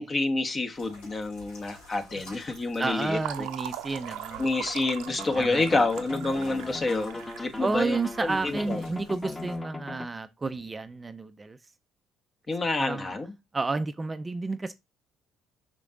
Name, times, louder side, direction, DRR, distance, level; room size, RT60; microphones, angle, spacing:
voice 1, 0.0-3.5 4.4-8.8 12.5-13.3, left 2 dB, 35° left, 1.5 m, -28 dB
sound 1, 0.7-9.6, left 2 dB, 75° left, 3.3 m, -51 dB
Fill (with liquid), 2.6-8.9, right 11 dB, 70° right, 0.7 m, -41 dB
voice 2, 2.8-4.5 5.4-5.8 7.6-11.6 12.8-13.1 13.5-14.7, right 3 dB, 25° right, 0.6 m, -31 dB
sound 2, 5.1-10.1, left 2 dB, 20° left, 1.5 m, -39 dB
5.9 x 4.9 x 3.8 m
hypercardioid pair, 50°, 0 cm